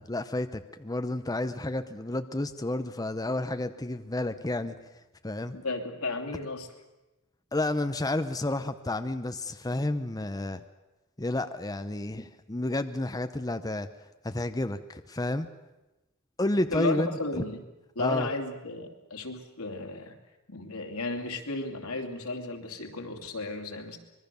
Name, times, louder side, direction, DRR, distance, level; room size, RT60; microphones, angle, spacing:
voice 1, 0.0-4.8 5.2-5.6 7.5-10.6 11.2-13.9 14.2-15.5 16.4-17.2 18.0-18.3, left 1 dB, 15° left, 9 dB, 0.7 m, -30 dB
voice 2, 5.5-6.7 16.7-17.6 17.9-20.2 20.5-24.0, left 2 dB, 90° left, 4 dB, 2.9 m, -34 dB
25.0 x 21.0 x 6.9 m, 1.0 s
head